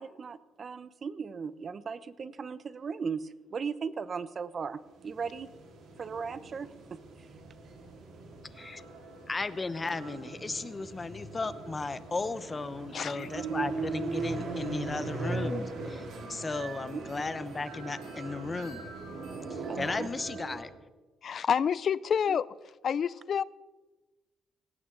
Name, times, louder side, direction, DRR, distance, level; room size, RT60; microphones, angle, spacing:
voice 1, 0.0-5.5 6.0-7.3 16.9-17.1 19.7-20.1 22.3-22.4, right 5 dB, 45° right, 15 dB, 0.9 m, -37 dB
sound 1, 4.9-20.6, right 3 dB, 85° right, 4.4 m, -39 dB
voice 2, 9.3-18.9 19.5-20.7, left 3 dB, 25° left, 13 dB, 1.0 m, -35 dB
voice 3, 12.9-13.3 21.2-22.5 22.8-23.4, left 7 dB, 55° left, 20 dB, 0.5 m, -28 dB
18.5 x 17.5 x 4.0 m, 1.2 s
cardioid pair, 90°, 0 cm